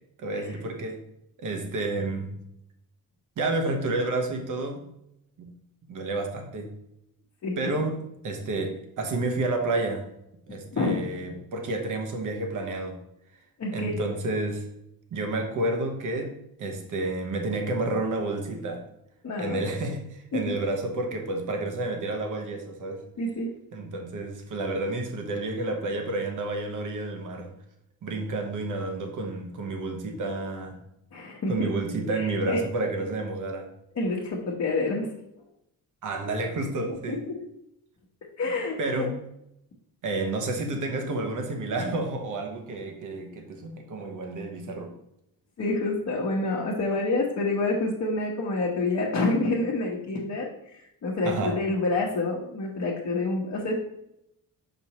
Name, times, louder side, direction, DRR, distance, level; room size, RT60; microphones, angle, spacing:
voice 1, 0.2-1.0 1.4-2.4 3.4-4.8 5.4-5.5 5.9-6.7 7.6-10.1 10.5-13.0 13.7-14.7 15.1-16.3 16.6-18.8 19.4-23.0 23.7-27.5 28.0-30.8 31.5-33.7 36.0-37.2 38.8-39.1 40.0-44.9 51.2-51.5, right 2 dB, 55° right, 3 dB, 1.1 m, -30 dB
voice 2, 7.4-7.7 10.7-11.0 13.6-14.0 19.2-19.7 20.3-20.6 23.2-23.5 31.1-31.7 32.1-32.6 33.9-35.1 36.9-37.4 38.2-39.2 41.8-42.0 45.6-53.7, left 2 dB, 45° left, -4 dB, 1.0 m, -28 dB
6.1 x 5.1 x 2.9 m, 0.80 s
wide cardioid pair, 170°, 36 cm